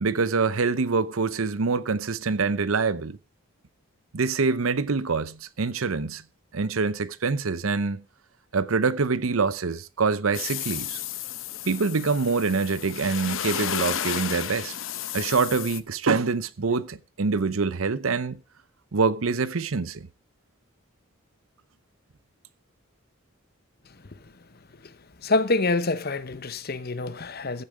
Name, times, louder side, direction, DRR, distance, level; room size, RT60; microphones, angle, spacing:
voice 1, 0.0-3.2 4.1-6.2 6.5-8.0 8.5-11.0 11.7-14.7 15.1-18.4 18.9-20.1, right 4 dB, 80° right, 0.7 m, -25 dB
sound 1, 10.3-15.8, left 10 dB, 70° left, 0.9 m, -32 dB
voice 2, 25.2-27.6, left 3 dB, 50° left, 1.0 m, -26 dB
15.5 x 8.8 x 4.9 m
head